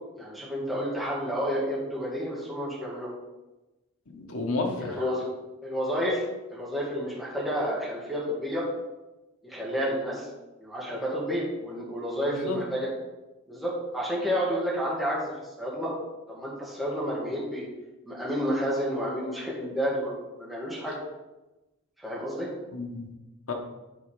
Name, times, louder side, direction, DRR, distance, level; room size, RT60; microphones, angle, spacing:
voice 1, 0.2-3.1 4.8-5.2 5.6-6.2 6.5-8.7 9.4-10.3 10.6-12.9 13.5-15.3 15.6-15.9 16.3-17.7 18.1-20.9 22.0-22.5, equal, ahead, -7 dB, 1.7 m, -30 dB
voice 2, 4.1-5.0 12.3-12.6 22.7-23.1 23.5-23.6, left 3 dB, 90° left, 2 dB, 1.4 m, -31 dB
8.9 x 3.9 x 4.9 m, 1.0 s
head